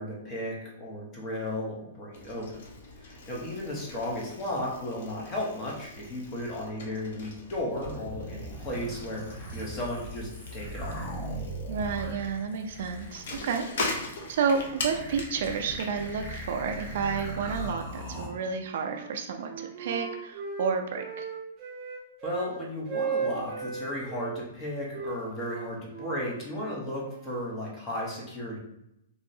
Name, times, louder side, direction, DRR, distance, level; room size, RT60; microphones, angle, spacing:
voice 1, 0.0-2.6 3.0-11.0 22.2-28.6, left 1 dB, 20° left, -3 dB, 0.7 m, -35 dB
Bicycle, 2.1-17.6, left 2 dB, 60° left, 0.6 m, -41 dB
sound 1, 7.8-18.3, right 1 dB, 40° left, 1.3 m, -39 dB
voice 2, 11.7-21.3, right 5 dB, 55° right, 5 dB, 0.3 m, -31 dB
Wind instrument woodwind instrument, 18.2-19.1 19.4-22.5 22.8-24.3 24.9-27.4, right 6 dB, 20° right, 0.7 m, -36 dB
3.0 x 2.7 x 2.6 m, 0.82 s
hypercardioid pair, 170°, 0 cm